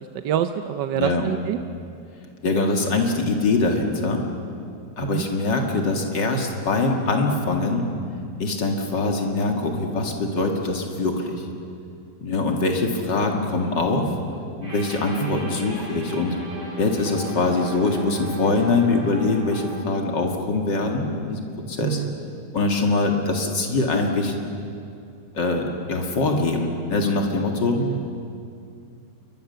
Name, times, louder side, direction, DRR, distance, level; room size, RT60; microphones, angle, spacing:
voice 1, 0.2-1.6 5.0-5.2 15.2-15.4 21.8-22.2 27.8-28.1, right 11 dB, 80° right, 8 dB, 1.4 m, -26 dB
voice 2, 0.9-1.2 2.4-4.2 5.0-7.9 8.4-11.5 12.2-14.1 14.6-16.4 16.8-22.0 22.5-24.4 25.3-27.8, left 3 dB, 85° left, 2 dB, 2.8 m, -23 dB
sound 1, 14.6-19.6, right 2 dB, 55° right, 8.0 m, -37 dB
28.5 x 23.5 x 6.9 m, 2.5 s
omnidirectional pair, 1.9 m